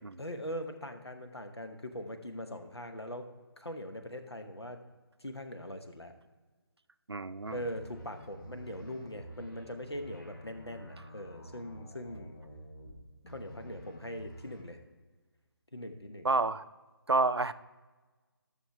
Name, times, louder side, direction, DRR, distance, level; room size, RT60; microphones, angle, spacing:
voice 1, 0.2-3.3 3.6-4.8 5.2-6.1 7.5-12.3 13.3-14.8 15.7-16.3, equal, 85° left, 6 dB, 1.2 m, -41 dB
voice 2, 7.1-7.6 16.2-16.6 17.1-17.5, right 3 dB, 80° right, 14 dB, 0.5 m, -29 dB
sound 1, 7.4-12.9 13.2-14.6, right 1 dB, 50° left, 2.6 m, -50 dB
12.5 x 6.5 x 3.4 m, 1.3 s
figure-of-eight pair, 150°, 13 cm